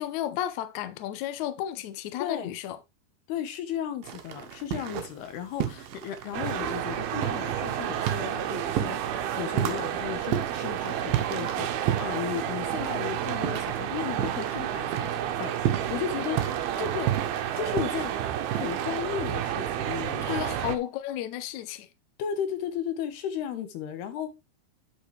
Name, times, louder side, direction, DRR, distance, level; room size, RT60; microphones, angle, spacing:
voice 1, 0.0-2.8 20.2-21.9, left 12 dB, 75° left, 1.8 m, -33 dB
voice 2, 2.2-2.5 3.3-11.7 12.0-16.4 16.8-17.1 17.6-18.1 18.5-20.7 22.2-24.3, left 9 dB, 90° left, 3.3 m, -35 dB
sound 1, 4.0-5.3 5.6-14.6 14.9-19.3, right 11 dB, 70° right, 2.5 m, -32 dB
sound 2, 6.3-20.8, right 10 dB, 90° right, 2.6 m, -31 dB
9.0 x 7.6 x 3.3 m
omnidirectional pair, 4.4 m